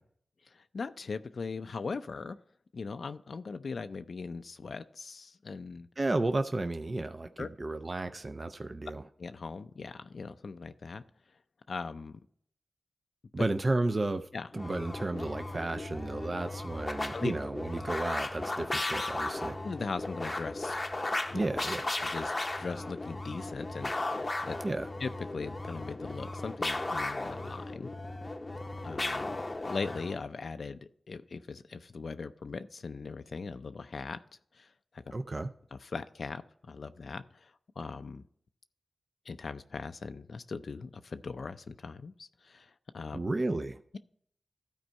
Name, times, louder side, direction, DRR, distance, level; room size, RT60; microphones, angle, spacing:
voice 1, 0.5-2.4 2.7-5.9 7.4-7.5 9.2-11.0 11.7-12.2 13.4-13.5 14.3-14.5 17.1-17.3 19.6-20.8 21.3-21.4 22.0-24.6 25.0-27.9 28.8-29.4 29.6-30.8 31.1-34.2 34.6-34.7 34.9-35.0 35.7-37.5 37.8-38.2 39.3-43.2, left 4 dB, 70° left, 0.4 m, -39 dB
voice 2, 6.0-9.0 13.3-14.3 14.5-19.6 21.3-21.8 24.6-24.9 35.1-35.5 43.1-43.8, right 2 dB, 40° right, 0.5 m, -32 dB
sound 1, 14.5-30.2, left 2 dB, 30° left, 0.7 m, -36 dB
12.5 x 4.5 x 5.3 m
cardioid pair, 60°, 0 cm